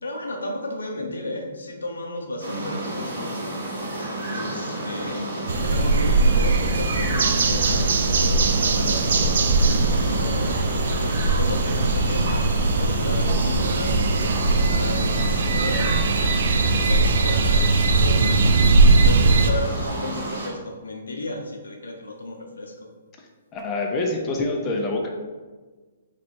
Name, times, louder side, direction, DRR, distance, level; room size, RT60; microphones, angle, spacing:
voice 1, 0.0-3.4 4.2-10.6 10.9-12.5 12.8-16.0 16.3-18.4 18.9-22.9, left 1 dB, 85° left, 2 dB, 0.7 m, -34 dB
sound 1, 2.4-20.5, right 1 dB, 80° right, 1.5 m, -30 dB
sound 2, 5.5-19.5, right 3 dB, 65° right, 0.4 m, -20 dB
voice 2, 23.5-25.1, left 2 dB, 25° left, 1 dB, 0.6 m, -26 dB
3.2 x 2.6 x 4.5 m, 1.4 s
hypercardioid pair, 130°, 0 cm